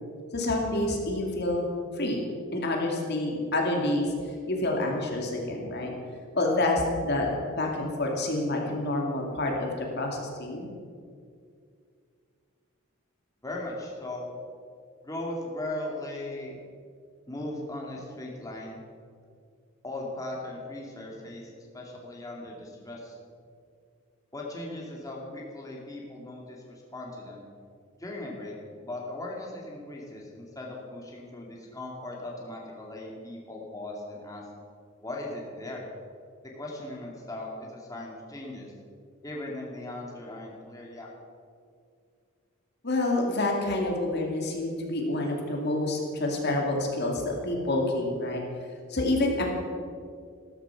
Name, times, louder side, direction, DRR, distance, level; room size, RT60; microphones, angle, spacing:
voice 1, 0.3-1.7 1.9-2.2 2.5-4.1 4.5-5.9 6.3-10.7 42.8-48.4 48.9-49.4, left 2 dB, 50° left, 0 dB, 2.4 m, -28 dB
voice 2, 13.4-14.3 15.0-16.5 17.3-18.8 19.8-23.2 24.3-27.4 28.0-28.5 28.8-34.4 35.0-35.8 36.6-38.7 39.2-41.1, left 1 dB, 15° left, -2 dB, 2.4 m, -38 dB
14.5 x 13.5 x 5.9 m, 2.3 s
head